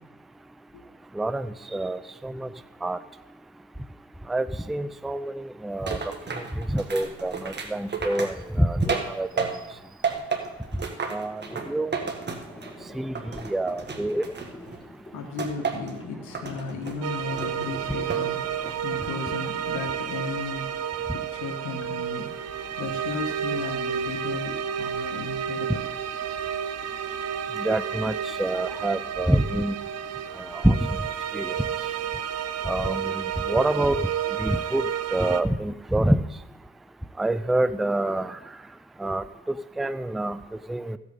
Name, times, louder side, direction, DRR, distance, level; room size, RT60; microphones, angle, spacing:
voice 1, 1.2-2.5 2.8-3.0 4.3-6.0 6.3-9.6 11.1-11.9 12.9-13.2 13.5-14.2 27.6-29.8 30.4-30.8 31.3-31.5 32.7-34.0 34.4-34.8 35.1-36.2 37.2-38.4 39.0-40.4 40.7-41.0, right 1 dB, ahead, 12 dB, 0.4 m, -26 dB
sound 1, 5.9-9.8 10.0-12.8 13.1-14.8 15.4-16.0 16.3-17.0 17.4-18.3 18.7-19.1, right 5 dB, 35° right, 1.8 m, -32 dB
sound 2, 11.3-18.7, equal, 20° left, 4.7 m, -46 dB
voice 2, 15.1-18.5 18.8-20.7 21.1-22.5 22.8-25.8, left 4 dB, 80° left, 2 dB, 1.7 m, -35 dB
sound 3, 17.0-35.4, right 8 dB, 55° right, 0.8 m, -31 dB
15.0 x 8.3 x 3.8 m, 1.0 s
cardioid pair, 90°, 30 cm